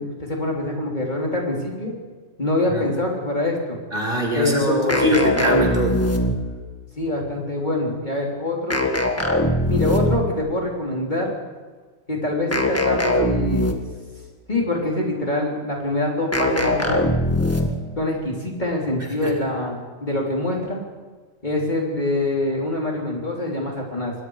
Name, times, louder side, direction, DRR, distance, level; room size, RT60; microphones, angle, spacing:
voice 1, 0.0-1.9 2.4-3.8 4.3-5.1 7.0-8.8 9.7-11.3 12.1-13.8 14.5-17.0 18.0-20.8 21.4-24.1, left 2 dB, 35° left, -1 dB, 3.9 m, -25 dB
voice 2, 3.9-6.0 19.2-19.3, equal, 45° right, -1 dB, 5.1 m, -22 dB
sound 1, 4.9-6.7 8.7-10.4 12.5-14.0 16.3-17.9, left 1 dB, 10° left, 1.8 m, -21 dB
27.5 x 21.5 x 5.0 m, 1.4 s
omnidirectional pair, 1.3 m